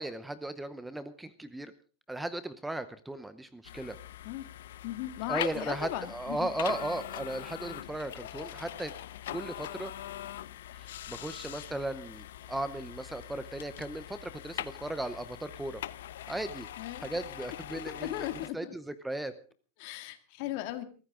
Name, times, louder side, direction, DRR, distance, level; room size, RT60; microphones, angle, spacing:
voice 1, 0.0-1.7 2.1-4.0 5.3-8.9 9.3-9.9 10.7-15.8 16.3-16.7 17.0-19.3, right 1 dB, 5° right, 13 dB, 0.7 m, -36 dB
sound 1, 3.6-18.5, left 12 dB, 85° left, 0.9 m, -43 dB
voice 2, 4.8-6.5 16.8-17.0 17.7-18.7 19.8-20.8, left 14 dB, 50° left, 9 dB, 2.1 m, -37 dB
23.0 x 14.5 x 3.7 m, 0.38 s
supercardioid pair, 155°, 0 cm